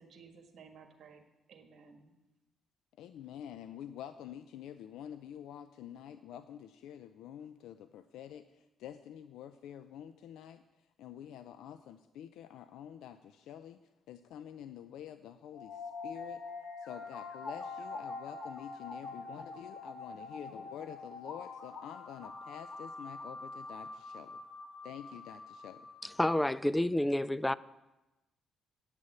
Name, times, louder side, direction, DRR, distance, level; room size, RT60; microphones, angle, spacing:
voice 1, 0.0-2.2, right 5 dB, 65° right, 1.5 m, -56 dB
voice 2, 3.0-10.6 11.0-13.8 14.1-16.4 16.8-24.4 24.8-25.9, left 10 dB, 85° left, 0.4 m, -48 dB
sound 1, 15.5-26.5, left 3 dB, 55° left, 1.3 m, -45 dB
voice 3, 26.0-27.5, left 1 dB, 10° left, 0.4 m, -29 dB
9.1 x 6.6 x 8.1 m
cardioid pair, 90°, 0 cm